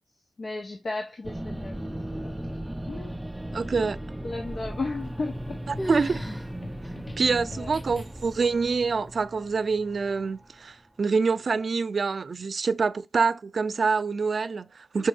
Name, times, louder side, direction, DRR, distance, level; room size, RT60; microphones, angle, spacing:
voice 1, 0.4-2.5 2.9-3.2 3.5-3.9 4.2-5.3 7.5-7.7, left 3 dB, 65° left, 1.2 m, -35 dB
sound 1, 1.2-10.7, right 1 dB, 10° right, 0.4 m, -37 dB
voice 2, 3.5-4.0 5.7-6.3 7.2-15.1, right 4 dB, 65° right, 0.5 m, -26 dB
sound 2, 4.8-8.5, left 2 dB, 35° left, 0.9 m, -46 dB
sound 3, 5.0-5.5 5.8-6.5 6.8-6.9 7.6-7.7 8.4-8.8, equal, 10° left, 1.7 m, -36 dB
6.2 x 5.0 x 3.2 m
wide cardioid pair, 100°, 0 cm